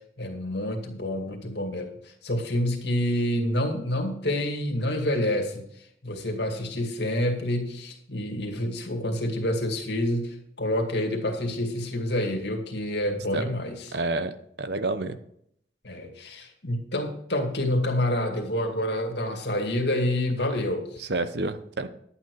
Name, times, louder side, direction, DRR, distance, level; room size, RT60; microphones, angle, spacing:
voice 1, 0.2-5.7 6.0-14.0 15.8-21.0, left 1 dB, 70° left, 3 dB, 2.2 m, -28 dB
voice 2, 13.9-14.3 14.6-15.2 21.0-21.9, right 2 dB, 65° right, 11 dB, 0.9 m, -28 dB
11.0 x 8.9 x 4.8 m, 0.69 s
head